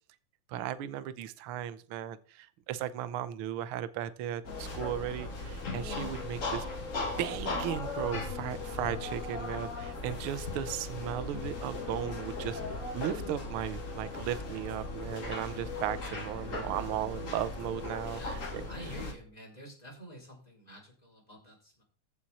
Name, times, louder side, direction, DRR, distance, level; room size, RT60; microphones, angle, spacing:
voice 1, 0.5-6.6 7.2-18.7, right 11 dB, 80° right, 1.2 m, -36 dB
sound 1, 4.4-19.1, left 3 dB, 30° left, 1.8 m, -38 dB
voice 2, 18.1-21.8, equal, 10° left, 4.1 m, -49 dB
14.5 x 6.2 x 4.3 m
omnidirectional pair, 3.5 m